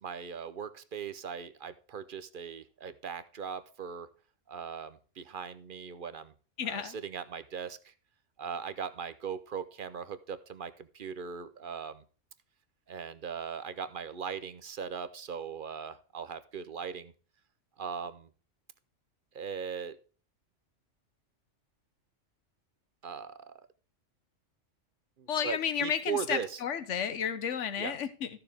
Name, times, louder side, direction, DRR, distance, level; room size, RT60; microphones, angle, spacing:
voice 1, 0.0-4.1 4.5-6.3 6.6-7.9 8.4-12.0 12.9-17.1 17.8-18.3 19.3-20.0 23.0-23.5 25.2-26.6 27.8-28.0, right 7 dB, 50° right, 13 dB, 0.8 m, -39 dB
voice 2, 6.6-7.0 25.3-28.3, left 8 dB, 75° left, 12 dB, 1.3 m, -32 dB
14.0 x 6.8 x 3.4 m, 0.38 s
omnidirectional pair, 1.3 m